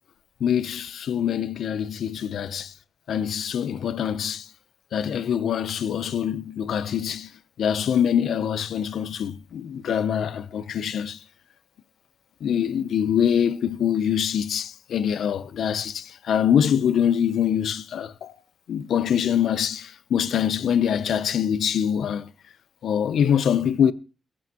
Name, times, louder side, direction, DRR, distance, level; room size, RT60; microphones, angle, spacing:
voice 1, 0.4-2.7 3.1-4.5 4.9-7.3 7.6-11.2 12.4-18.3 18.7-22.3 22.8-23.9, left 8 dB, 85° left, 0.7 m, -24 dB
23.0 x 8.5 x 3.0 m
cardioid pair, 105°, 0 cm